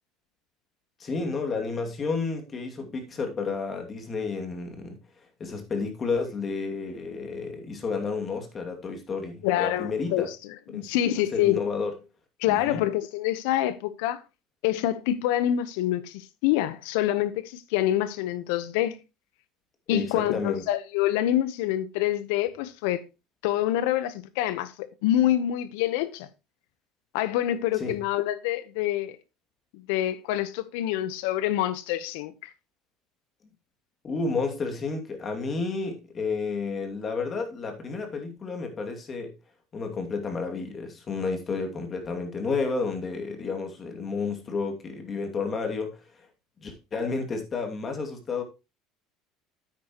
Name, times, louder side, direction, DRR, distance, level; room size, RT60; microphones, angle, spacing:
voice 1, 1.0-5.0 5.4-10.3 10.7-11.9 12.5-12.8 19.9-20.6 27.8-28.0 34.0-39.3 39.7-46.0 46.6-48.4, left 4 dB, 30° left, 2.5 m, -31 dB
voice 2, 9.4-11.6 12.4-14.2 14.6-19.0 19.9-23.0 23.4-26.3 27.1-29.2 29.7-32.5, left 13 dB, 85° left, 1.0 m, -26 dB
9.9 x 8.6 x 3.0 m
supercardioid pair, 120°, 0 cm